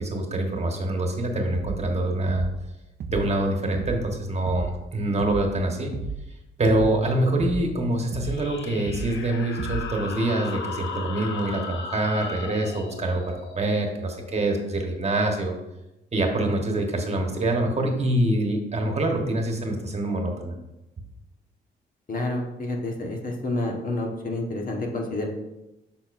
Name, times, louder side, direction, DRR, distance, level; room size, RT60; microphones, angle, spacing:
voice 1, 0.0-2.5 3.1-5.9 6.6-15.5 16.1-20.5, right 1 dB, 35° right, 2 dB, 1.3 m, -25 dB
sound 1, 1.5-1.9 2.3-2.6 3.0-3.4 3.7-4.1 4.5-4.8 5.2-5.6 5.9-6.3 6.7-7.0 7.4-7.8 8.1-8.5 8.9-9.2 9.6-10.0, right 5 dB, 55° right, 0.6 m, -33 dB
sound 2, 8.2-15.5, left 5 dB, 70° left, 0.8 m, -38 dB
voice 2, 22.1-25.3, left 2 dB, 45° left, 1 dB, 1.3 m, -29 dB
8.0 x 6.1 x 2.6 m, 0.96 s
cardioid pair, 90°, 20 cm